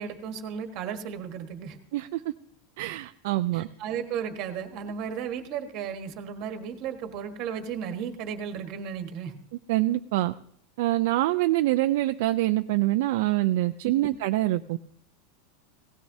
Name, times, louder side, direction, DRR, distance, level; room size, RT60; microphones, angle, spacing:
voice 1, 0.0-1.8 3.5-9.3 13.8-14.2, right 7 dB, 35° right, 6 dB, 1.4 m, -34 dB
voice 2, 2.8-3.7 9.7-10.3 10.8-14.8, right 16 dB, 55° right, 8 dB, 0.4 m, -25 dB
17.5 x 16.5 x 2.7 m, 0.64 s
supercardioid pair, 175°, 0 cm